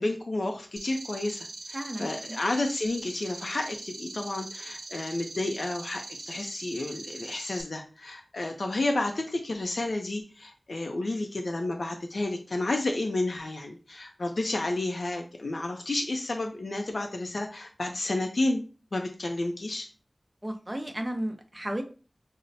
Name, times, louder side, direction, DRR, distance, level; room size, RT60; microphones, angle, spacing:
voice 1, 0.0-18.6 18.9-19.9, left 2 dB, 80° left, 3 dB, 0.4 m, -31 dB
sound 1, 0.8-7.6, right 2 dB, 90° right, 0.6 m, -42 dB
voice 2, 1.7-2.4 20.4-21.8, right 1 dB, 20° right, 4 dB, 0.5 m, -34 dB
5.3 x 2.0 x 2.6 m, 0.36 s
wide cardioid pair, 65°, 0 cm